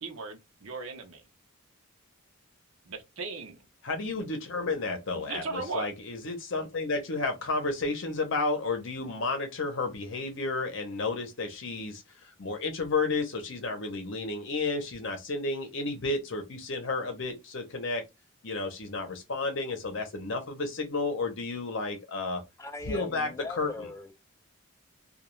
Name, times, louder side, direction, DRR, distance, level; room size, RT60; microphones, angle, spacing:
voice 1, 0.0-1.2 2.9-3.6 5.3-5.9, right 4 dB, 75° right, 0.6 m, -37 dB
voice 2, 3.8-18.0 18.4-22.4 22.9-23.9, left 3 dB, 60° left, 0.7 m, -32 dB
voice 3, 22.6-24.1, left 3 dB, 15° left, 0.3 m, -40 dB
2.3 x 2.3 x 3.0 m
head